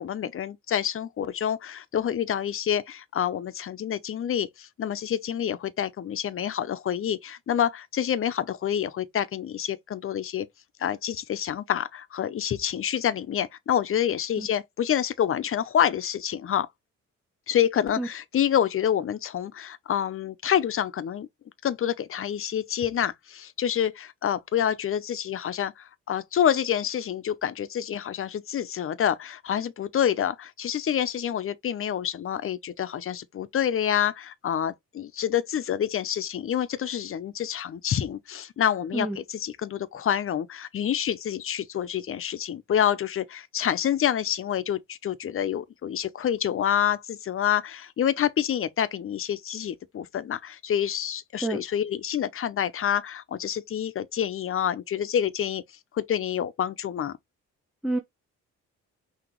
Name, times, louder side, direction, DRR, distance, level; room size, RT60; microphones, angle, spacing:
voice 1, 0.0-10.5 10.8-16.7 17.5-21.3 21.6-55.6 55.9-57.2, left 9 dB, 45° left, 0.7 m, -27 dB
voice 2, 14.4-14.5 18.0-18.1 38.9-39.2 51.4-51.6 57.8-58.0, right 2 dB, 5° right, 0.9 m, -28 dB
5.9 x 2.8 x 3.0 m
cardioid pair, 90°, 30 cm